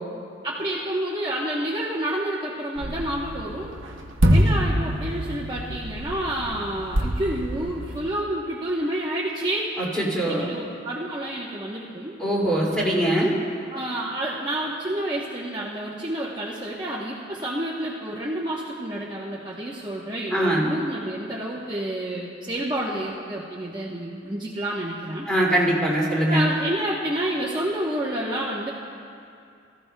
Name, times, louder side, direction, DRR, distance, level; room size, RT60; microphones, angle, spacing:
voice 1, 0.4-3.7 4.3-9.7 10.2-12.1 13.7-25.2 26.3-28.7, right 1 dB, 25° right, -6 dB, 0.9 m, -29 dB
sound 1, 2.8-8.1, equal, 80° right, 0.9 m, -25 dB
voice 2, 10.0-10.5 12.2-13.3 20.3-20.7 25.3-26.5, right 1 dB, 5° left, -5 dB, 2.3 m, -22 dB
22.0 x 14.0 x 2.2 m, 2.5 s
head